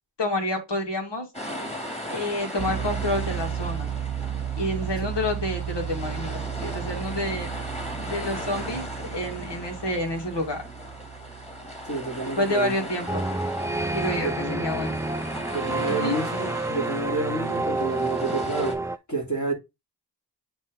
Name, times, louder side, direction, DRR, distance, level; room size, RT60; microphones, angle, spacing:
voice 1, 0.2-1.3 2.0-3.9 4.6-7.5 8.0-10.6 12.2-13.3 13.9-15.0 15.9-16.2, left 1 dB, 70° left, 2.3 m, -29 dB
sound 1, 1.3-18.7, equal, 15° left, 2.4 m, -38 dB
sound 2, 2.6-13.5, right 10 dB, 50° right, 0.6 m, -34 dB
voice 2, 11.9-12.9 14.1-14.7 15.5-19.5, right 2 dB, 40° left, 2.8 m, -30 dB
sound 3, 13.1-19.0, right 2 dB, 5° right, 0.3 m, -29 dB
8.1 x 3.2 x 3.6 m
cardioid pair, 50°, 43 cm